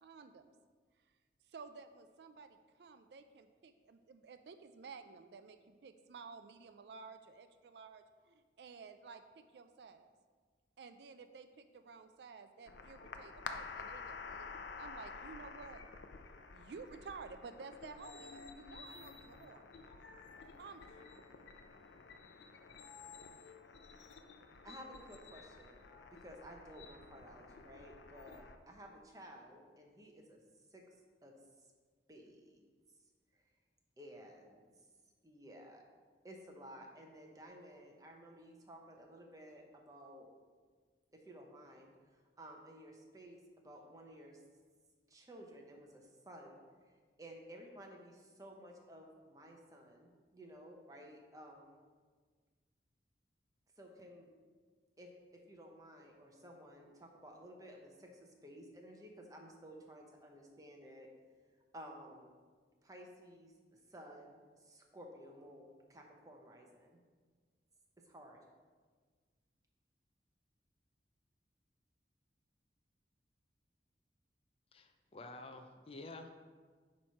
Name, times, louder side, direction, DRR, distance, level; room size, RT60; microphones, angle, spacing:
voice 1, 0.0-0.5 1.5-10.1 10.8-15.8 16.5-19.7 20.6-21.1, right 5 dB, 70° right, 9 dB, 0.4 m, -53 dB
sound 1, 12.7-28.6, left 5 dB, 85° left, 0.5 m, -51 dB
voice 2, 24.6-25.8 26.1-30.4 30.7-30.8 31.2-31.3 32.1-32.6 33.3-33.4 34.0-34.6 35.2-35.8 36.2-40.3 41.1-44.4 45.1-46.9 47.2-51.8 53.8-54.3 55.0-61.1 61.7-62.3 62.8-67.0 68.1-68.4, equal, 20° right, 1 dB, 0.9 m, -54 dB
voice 3, 74.7-76.3, left 2 dB, 35° left, 6 dB, 0.4 m, -50 dB
8.5 x 3.2 x 5.7 m, 1.5 s
head